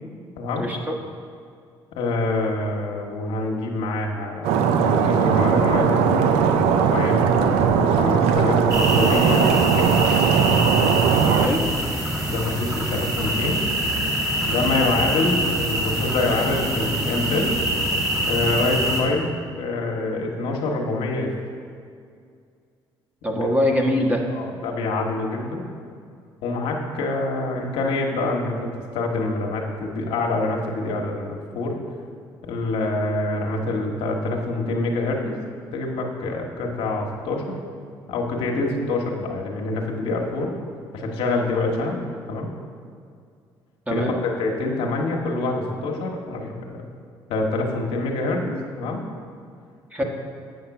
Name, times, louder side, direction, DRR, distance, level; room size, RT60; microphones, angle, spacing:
voice 1, 0.6-0.9 11.4-11.6 23.2-24.2 43.9-44.1 49.9-50.0, left 1 dB, 15° right, 0 dB, 1.4 m, -22 dB
voice 2, 1.9-6.1 6.9-9.9 11.4-11.6 12.3-13.6 14.5-17.6 18.2-21.3 23.3-23.4 24.3-25.6 26.4-28.6 28.9-31.8 32.4-35.4 35.7-37.6 38.1-40.5 40.9-42.5 43.9-46.8 47.3-49.0, left 2 dB, 80° left, 0 dB, 1.2 m, -26 dB
Stream, 4.4-11.5, right 6 dB, 90° right, 0.5 m, -19 dB
sound 1, 8.7-19.0, right 1 dB, 30° right, 2.2 m, -24 dB
8.2 x 5.8 x 5.9 m, 2.2 s
supercardioid pair, 80°, 10 cm